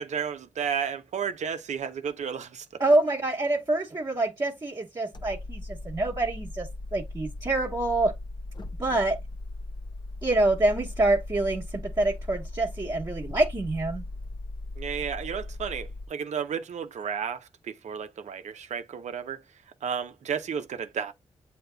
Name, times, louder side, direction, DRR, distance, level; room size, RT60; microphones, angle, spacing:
voice 1, 0.0-2.7 14.8-19.4 19.8-21.1, right 7 dB, 75° right, 0.7 m, -32 dB
voice 2, 2.8-8.1 8.8-9.2 10.2-14.0, right 2 dB, 30° right, 1.2 m, -26 dB
sound 1, 5.1-16.1, left 2 dB, 40° left, 0.7 m, -38 dB
7.8 x 2.9 x 2.2 m
cardioid pair, 55°, 12 cm